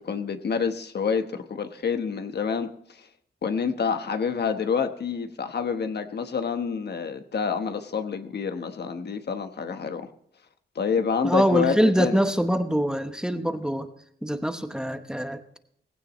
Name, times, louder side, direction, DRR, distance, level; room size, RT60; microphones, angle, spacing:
voice 1, 0.0-3.1 3.4-10.1 10.7-12.2, left 6 dB, 70° left, 7 dB, 1.1 m, -28 dB
voice 2, 11.2-13.9 14.2-15.6, equal, 5° right, 7 dB, 1.0 m, -24 dB
18.5 x 16.0 x 3.1 m, 0.70 s
wide cardioid pair, 155°, 18 cm